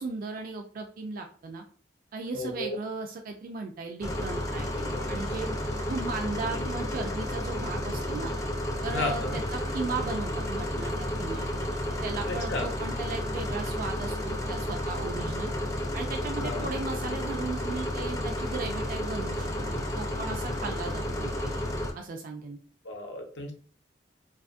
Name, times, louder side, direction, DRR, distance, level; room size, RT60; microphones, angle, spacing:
voice 1, 0.0-1.6 2.1-5.6 5.9-8.3 8.8-11.7 12.0-15.5 15.9-21.5 21.9-22.6, right 3 dB, 50° right, 3 dB, 0.3 m, -36 dB
voice 2, 2.3-2.8 6.5-6.7 8.9-9.4 12.3-12.7 16.4-16.7 22.8-23.5, left 2 dB, 75° left, 3 dB, 0.7 m, -33 dB
sound 1, 4.0-21.9, left 1 dB, 20° left, 0.4 m, -32 dB
2.5 x 2.4 x 2.4 m, 0.42 s
head